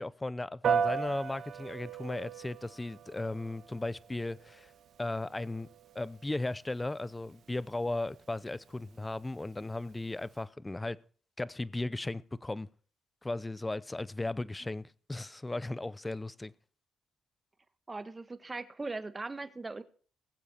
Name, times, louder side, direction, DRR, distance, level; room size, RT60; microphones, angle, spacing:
voice 1, 0.0-4.7 5.0-5.7 5.9-11.0 11.4-12.7 13.2-16.5, left 2 dB, 15° left, 0.6 m, -36 dB
Piano, 0.6-10.4, right 7 dB, 65° right, 1.4 m, -38 dB
voice 2, 17.9-19.8, right 3 dB, 20° right, 1.3 m, -39 dB
20.5 x 7.5 x 4.2 m
cardioid pair, 90°, 0 cm